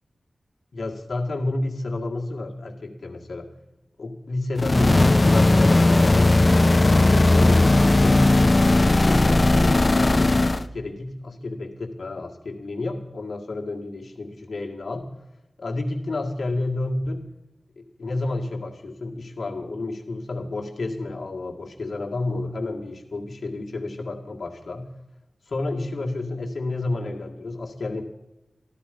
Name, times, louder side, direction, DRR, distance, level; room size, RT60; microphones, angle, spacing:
voice 1, 0.7-3.5 4.0-6.4 6.9-8.3 8.8-15.1 15.6-17.2 17.8-24.9 25.5-28.0, left 2 dB, 70° left, 1 dB, 1.9 m, -30 dB
sound 1, 4.6-10.7, left 2 dB, 35° left, 0.6 m, -17 dB
14.0 x 12.5 x 5.2 m, 0.98 s
wide cardioid pair, 80°, 0 cm